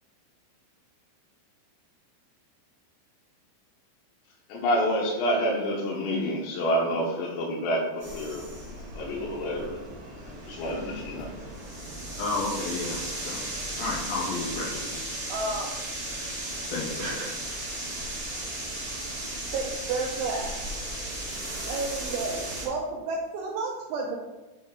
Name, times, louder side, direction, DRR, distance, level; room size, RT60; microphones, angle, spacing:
voice 1, 4.5-8.4 9.0-9.8 10.5-11.3, equal, 85° left, -4 dB, 3.8 m, -28 dB
sound 1, 8.0-22.7, right 1 dB, 45° right, 1.2 m, -36 dB
voice 2, 12.2-13.4 13.8-14.8 16.7-17.2, left 3 dB, 65° left, -5 dB, 3.6 m, -31 dB
voice 3, 15.3-15.8 17.0-17.3 19.5-20.6 21.7-24.2, right 3 dB, 80° right, -1 dB, 2.9 m, -31 dB
7.5 x 6.3 x 3.7 m, 1.1 s
omnidirectional pair, 6.0 m